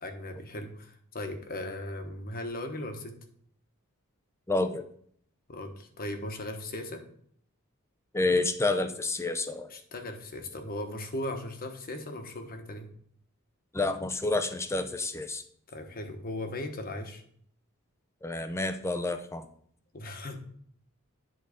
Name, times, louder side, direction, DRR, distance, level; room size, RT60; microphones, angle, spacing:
voice 1, 0.0-3.1 5.5-7.0 9.7-12.9 15.7-17.2 19.9-20.4, left 1 dB, 40° left, 5 dB, 1.1 m, -38 dB
voice 2, 4.5-4.9 8.1-9.7 13.7-15.4 18.2-19.5, left 2 dB, 10° left, 9 dB, 0.6 m, -29 dB
10.5 x 3.9 x 5.0 m, 0.63 s
head